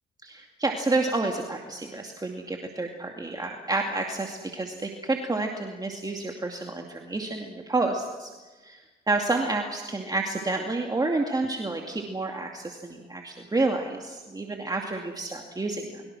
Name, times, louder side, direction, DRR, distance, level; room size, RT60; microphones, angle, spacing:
voice 1, 0.2-8.3 8.6-16.0, right 2 dB, 20° right, 2 dB, 2.5 m, -29 dB
29.0 x 23.0 x 6.2 m, 1.3 s
cardioid pair, 90°, 20 cm